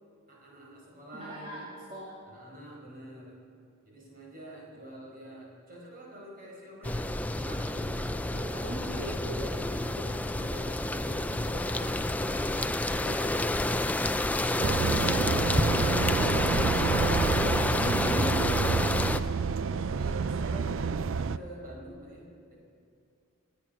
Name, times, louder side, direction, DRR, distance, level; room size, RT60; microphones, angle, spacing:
voice 1, 0.3-1.7 2.3-3.4 3.8-8.2 8.7-9.1 10.3-12.1 12.5-13.5 18.9-22.6, right 1 dB, 45° right, -3 dB, 5.1 m, -47 dB
voice 2, 1.1-1.6 1.9-2.1 8.2-10.1 11.1-12.0 13.0-13.4 17.0-18.4, equal, 25° right, -7 dB, 2.4 m, -40 dB
sound 1, 6.8-19.2, left 1 dB, 5° left, 0.3 m, -29 dB
sound 2, 14.6-21.4, right 5 dB, 65° right, 0.5 m, -29 dB
27.0 x 9.0 x 6.0 m, 2.3 s
head